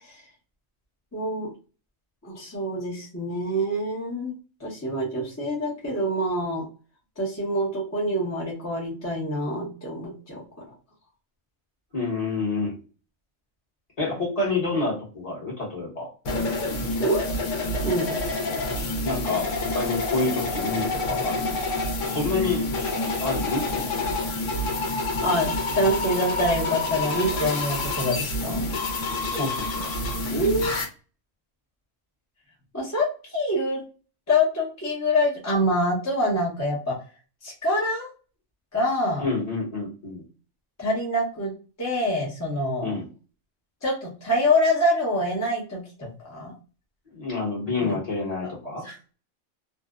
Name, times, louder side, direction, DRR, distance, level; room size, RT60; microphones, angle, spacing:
voice 1, 1.1-1.5 2.2-4.3 4.6-6.6 7.2-10.4 17.0-17.2 17.8-18.2 25.2-28.6 30.3-30.7 32.7-33.1 33.3-33.8 34.3-37.0 37.4-38.1 38.7-39.2 40.8-41.5 41.8-42.9 43.8-46.5 47.8-47.9 48.8-48.9, left 1 dB, 20° left, -4 dB, 0.5 m, -25 dB
voice 2, 11.9-12.8 14.0-16.1 19.0-21.6 22.1-22.9 23.2-23.9 29.2-29.9 39.2-40.2 42.8-43.1 47.1-48.8, left 3 dB, 35° left, -3 dB, 0.9 m, -28 dB
sound 1, 16.2-30.8, left 2 dB, 70° left, 1.0 m, -28 dB
2.6 x 2.0 x 2.3 m, 0.35 s
omnidirectional pair, 1.4 m